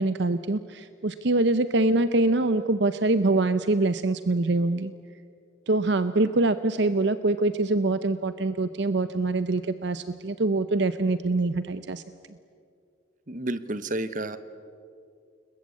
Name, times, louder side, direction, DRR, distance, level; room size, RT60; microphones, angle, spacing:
voice 1, 0.0-4.9 5.7-12.0, right 2 dB, 60° right, 12 dB, 0.7 m, -24 dB
voice 2, 13.3-14.4, right 1 dB, 40° right, 13 dB, 1.1 m, -30 dB
29.5 x 21.0 x 8.6 m, 2.4 s
head